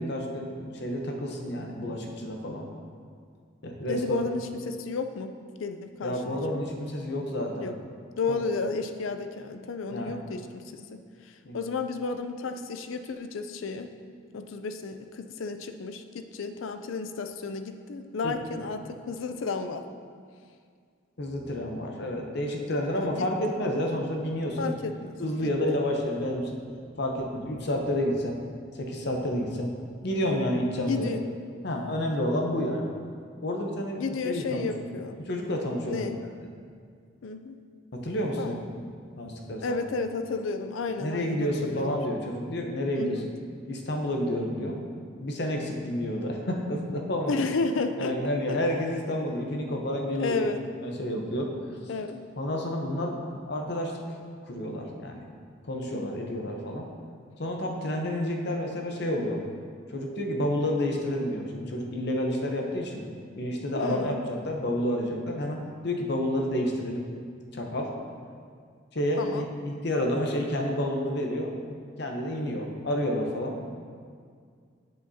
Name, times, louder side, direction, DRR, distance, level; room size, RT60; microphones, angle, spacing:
voice 1, 0.0-2.7 3.6-4.2 6.0-7.7 8.3-8.4 9.9-10.2 11.4-11.6 18.2-18.6 21.2-24.7 25.2-26.6 27.0-28.4 28.7-29.7 30.0-31.1 31.6-32.9 33.4-34.7 35.2-36.3 37.9-38.6 39.2-39.8 41.0-43.3 43.7-44.8 45.2-47.4 48.0-50.4 50.8-51.5 52.4-54.2 54.4-55.3 55.7-56.9 57.4-59.4 59.9-63.0 63.4-65.6 65.8-67.0 67.5-67.9 68.9-71.5 72.0-73.8, left 1 dB, 60° left, 1 dB, 0.8 m, -30 dB
voice 2, 3.9-6.4 7.6-7.8 8.2-10.6 10.9-11.0 11.5-13.9 14.3-19.8 22.9-23.3 24.6-25.5 30.9-31.2 34.0-35.2 35.9-36.2 37.2-37.6 38.4-38.6 39.6-42.0 43.0-43.3 47.3-48.2 48.5-48.6 50.2-50.6 51.9-52.2 55.9-56.1 63.7-64.2 69.2-69.5, left 4 dB, 90° left, 8 dB, 0.5 m, -32 dB
7.8 x 7.5 x 2.8 m, 2.1 s
head